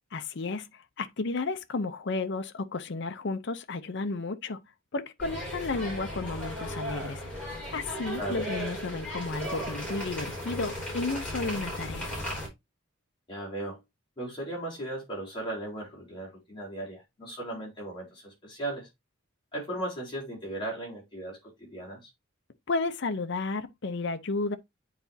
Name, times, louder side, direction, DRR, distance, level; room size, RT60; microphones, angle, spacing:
voice 1, 0.1-4.6 4.9-12.1 22.7-24.6, left 3 dB, 60° left, 0.6 m, -33 dB
sound 1, 5.2-12.5, equal, 5° left, 4.3 m, -36 dB
voice 2, 13.3-13.8 14.2-18.9 19.5-22.1, right 1 dB, 25° left, 3.9 m, -37 dB
9.4 x 4.1 x 2.7 m
head